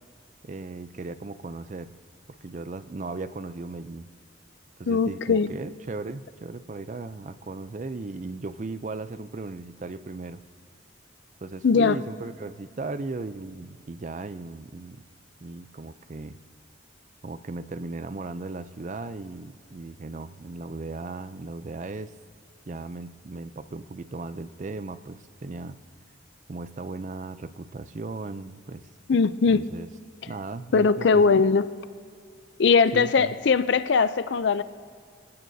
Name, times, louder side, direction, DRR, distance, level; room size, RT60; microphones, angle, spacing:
voice 1, 0.4-1.9 2.4-4.1 4.8-10.4 11.4-15.0 15.4-16.4 17.2-22.1 22.7-25.8 26.5-28.8 29.5-29.9 30.3-31.4 32.9-33.3, right 3 dB, 40° right, 12 dB, 0.4 m, -37 dB
voice 2, 4.9-5.5 11.6-12.0 29.1-29.6 30.7-31.7 32.6-34.6, left 5 dB, 65° left, 14 dB, 0.5 m, -20 dB
27.0 x 15.5 x 2.7 m, 2.1 s
head